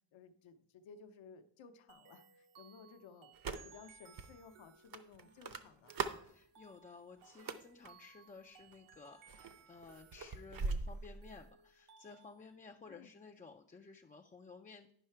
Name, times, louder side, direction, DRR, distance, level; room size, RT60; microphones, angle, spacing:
voice 1, 0.1-3.3 3.6-5.9 12.9-13.1, left 5 dB, 70° left, 8 dB, 0.8 m, -57 dB
sound 1, 1.9-12.6, right 6 dB, 80° right, 1.2 m, -63 dB
sound 2, 3.3-3.9 4.2-4.3 4.9-6.3 7.2-7.9 8.6-9.0 9.3-11.5, right 4 dB, 45° right, 0.7 m, -41 dB
voice 2, 6.2-14.9, left 4 dB, 20° left, 2 dB, 0.3 m, -55 dB
10.0 x 5.6 x 4.5 m, 0.66 s
wide cardioid pair, 145°, 47 cm